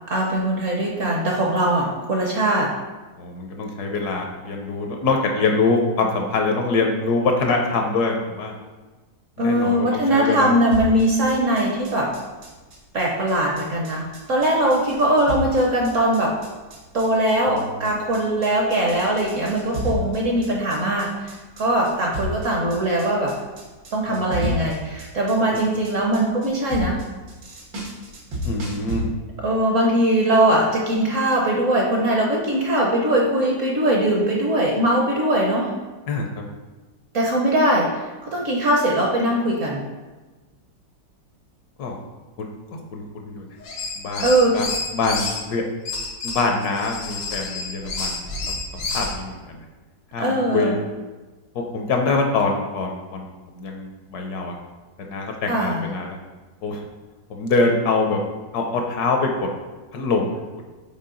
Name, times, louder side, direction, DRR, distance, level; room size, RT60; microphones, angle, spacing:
voice 1, 0.1-2.7 9.4-12.1 12.9-16.3 16.9-21.1 21.6-23.3 23.9-27.0 29.4-35.7 37.1-37.9 38.3-39.8 44.2-44.6 50.2-50.8 55.5-55.8, right 1 dB, 55° right, -1 dB, 0.9 m, -21 dB
voice 2, 3.2-8.5 9.4-10.5 17.5-17.9 24.1-24.6 28.4-29.0 36.1-36.4 41.8-42.0 42.4-42.5 42.7-43.4 44.0-44.7 44.9-45.6 46.2-48.2 48.9-49.6 50.1-50.8 51.7-53.3 53.5-54.6 55.1-56.2 56.6-56.8 57.3-58.2 58.5-59.5 59.9-60.3, left 3 dB, 65° left, 2 dB, 1.1 m, -24 dB
sound 1, 10.7-29.0, equal, 85° right, 2.1 m, -32 dB
sound 2, 43.6-45.4 45.9-49.2, left 3 dB, 85° left, 1.7 m, -29 dB
5.6 x 4.4 x 3.8 m, 1.2 s
omnidirectional pair, 2.0 m